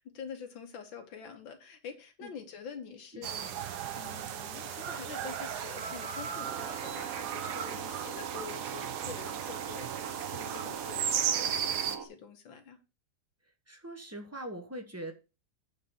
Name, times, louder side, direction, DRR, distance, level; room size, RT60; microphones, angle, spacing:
voice 1, 0.0-12.8, left 7 dB, 85° left, 2.0 m, -46 dB
voice 2, 3.1-3.5 4.2-4.3 13.7-15.1, right 1 dB, 10° right, 0.8 m, -42 dB
sound 1, 3.2-12.0, right 8 dB, 65° right, 1.2 m, -35 dB
sound 2, 6.4-12.1, right 8 dB, 45° right, 1.4 m, -42 dB
8.6 x 4.0 x 6.9 m
omnidirectional pair, 2.0 m